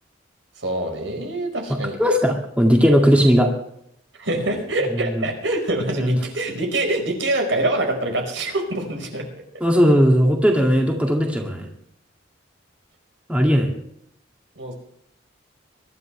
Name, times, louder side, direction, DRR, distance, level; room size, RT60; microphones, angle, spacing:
voice 1, 0.6-2.0 4.2-9.2 14.6-14.7, right 1 dB, 75° right, 3 dB, 4.8 m, -25 dB
voice 2, 2.0-3.5 6.0-6.2 9.6-11.7 13.3-13.7, equal, 5° right, 1 dB, 2.1 m, -17 dB
23.5 x 12.5 x 3.3 m, 0.71 s
head